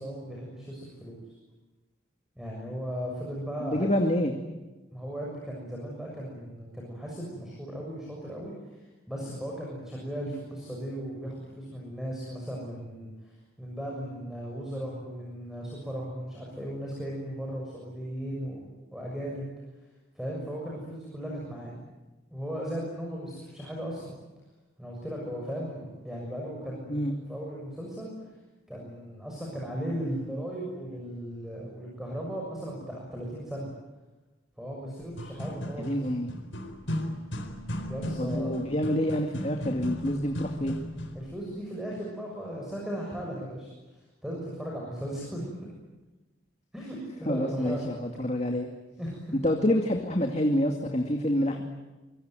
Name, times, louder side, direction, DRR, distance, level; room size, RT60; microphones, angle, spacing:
voice 1, 0.0-1.3 2.4-3.9 4.9-19.5 20.1-21.8 22.3-24.1 24.8-27.0 27.3-28.1 28.7-33.7 34.6-35.9 37.9-38.5 41.1-43.7 44.2-45.4 46.7-47.9 49.0-49.3, equal, ahead, -3 dB, 6.8 m, -37 dB
voice 2, 3.6-4.3 26.9-27.1 35.8-36.3 38.2-40.7 47.3-48.7 49.3-51.6, left 1 dB, 35° left, 3 dB, 2.3 m, -27 dB
sound 1, 35.0-41.3, equal, 75° left, 4.2 m, -35 dB
25.5 x 23.0 x 9.3 m, 1.1 s
head